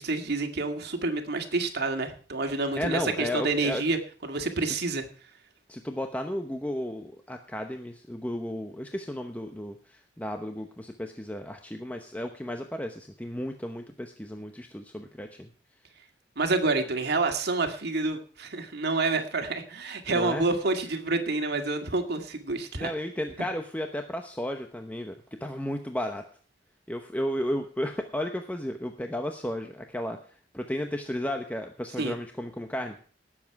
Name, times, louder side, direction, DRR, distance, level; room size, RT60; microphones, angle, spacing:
voice 1, 0.0-5.0 16.4-22.9 32.0-32.2, right 3 dB, 60° right, 5 dB, 2.0 m, -28 dB
voice 2, 2.8-3.8 4.6-4.7 5.7-15.5 20.1-20.5 22.8-25.1 25.4-26.3 26.9-30.2 30.5-33.0, left 1 dB, 10° left, 5 dB, 0.9 m, -33 dB
18.5 x 7.5 x 4.7 m, 0.43 s
head